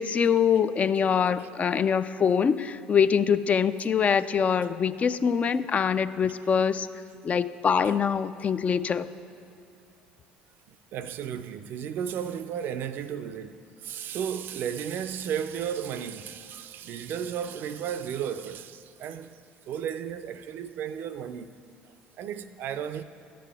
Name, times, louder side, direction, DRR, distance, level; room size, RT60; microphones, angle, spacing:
voice 1, 0.0-6.9 7.2-9.1, left 7 dB, 35° left, 0.3 m, -24 dB
voice 2, 10.7-19.4 19.7-21.5 22.2-23.0, right 8 dB, 55° right, 0.4 m, -34 dB
12.0 x 7.6 x 3.4 m
hypercardioid pair, 75°, 4 cm